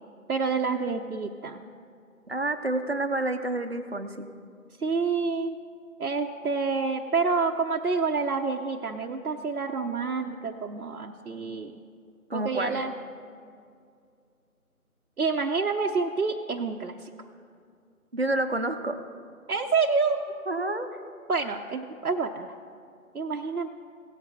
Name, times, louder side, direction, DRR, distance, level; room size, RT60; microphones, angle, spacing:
voice 1, 0.3-1.6 4.8-5.6 6.0-11.8 12.3-12.9 15.2-17.1 19.5-20.2 21.3-22.5 23.1-23.7, right 4 dB, 80° right, 2 dB, 0.8 m, -28 dB
voice 2, 2.3-4.3 12.3-12.8 18.1-19.0 20.5-20.9, right 2 dB, 45° right, 8 dB, 0.7 m, -29 dB
17.5 x 8.5 x 2.7 m, 2.3 s
figure-of-eight pair, 165°, 44 cm